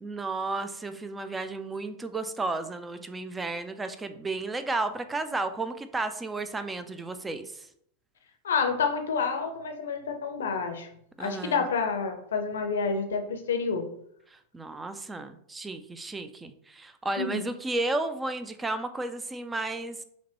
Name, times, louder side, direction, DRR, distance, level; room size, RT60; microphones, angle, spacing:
voice 1, 0.0-7.7 11.2-11.7 14.3-20.0, right 2 dB, 10° right, 10 dB, 0.4 m, -33 dB
voice 2, 8.4-10.9 11.2-13.9 17.2-17.4, left 5 dB, 65° left, 5 dB, 0.6 m, -29 dB
5.6 x 2.2 x 3.0 m, 0.69 s
figure-of-eight pair, 90°, 0 cm